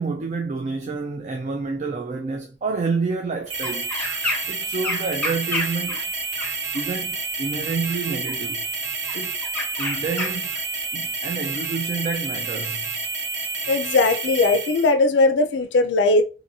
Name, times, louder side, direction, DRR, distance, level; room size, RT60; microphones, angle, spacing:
voice 1, 0.0-3.9 4.5-6.0 6.7-8.6 9.1-9.4 9.8-10.5 10.9-12.9, right 4 dB, 40° right, 0.3 m, -28 dB
sound 1, 3.5-14.9, right 4 dB, 80° right, 0.8 m, -29 dB
sound 2, 3.6-4.6 4.8-6.9 7.9-8.3 9.1-10.6 11.5-11.6, left 1 dB, 5° left, 0.7 m, -30 dB
voice 2, 13.7-16.2, left 3 dB, 70° left, 0.4 m, -19 dB
2.6 x 2.5 x 2.7 m
head